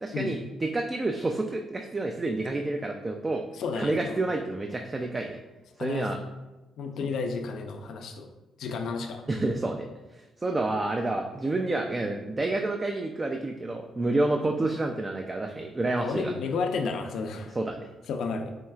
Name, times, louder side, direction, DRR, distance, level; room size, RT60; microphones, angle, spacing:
voice 1, 0.0-3.4 3.8-5.4 5.8-6.2 9.3-9.9 10.4-16.3 17.5-17.9, right 2 dB, 25° right, 3 dB, 0.3 m, -29 dB
voice 2, 3.5-4.2 5.8-6.1 6.8-8.3 8.6-9.2 15.9-17.5 18.1-18.5, left 4 dB, 70° left, 4 dB, 0.4 m, -32 dB
4.5 x 3.1 x 2.3 m, 1.1 s
cardioid pair, 90°, 0 cm